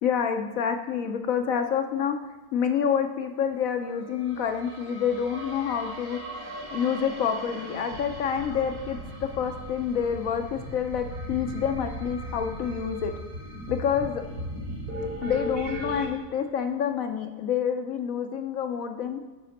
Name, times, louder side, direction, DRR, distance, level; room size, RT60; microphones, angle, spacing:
voice 1, 0.0-2.2 2.5-6.2 6.7-13.1 13.7-14.2 15.2-19.2, left 7 dB, 70° left, 6 dB, 0.9 m, -28 dB
sound 1, 3.8-16.1, equal, 60° right, 1.7 m, -37 dB
9.2 x 4.8 x 4.1 m, 1.3 s
omnidirectional pair, 1.7 m